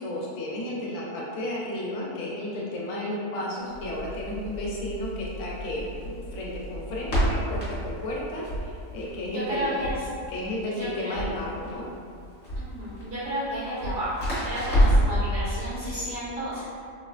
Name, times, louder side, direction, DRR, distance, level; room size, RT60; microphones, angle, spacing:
voice 1, 0.0-9.8 10.3-11.8, left 1 dB, 80° left, -4 dB, 1.0 m, -33 dB
Crackle, 3.7-15.2, equal, 50° left, 1.1 m, -29 dB
voice 2, 9.3-9.9 10.8-11.2 12.6-14.1 14.4-16.6, equal, 65° right, -15 dB, 1.7 m, -32 dB
3.5 x 2.1 x 2.5 m, 2.4 s
omnidirectional pair, 1.3 m